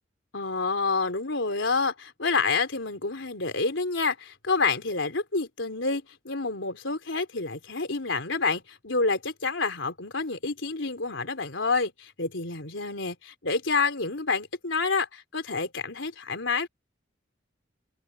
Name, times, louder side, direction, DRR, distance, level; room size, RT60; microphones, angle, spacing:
voice 1, 0.3-16.7, left 4 dB, 85° left, 3.7 m, -28 dB
head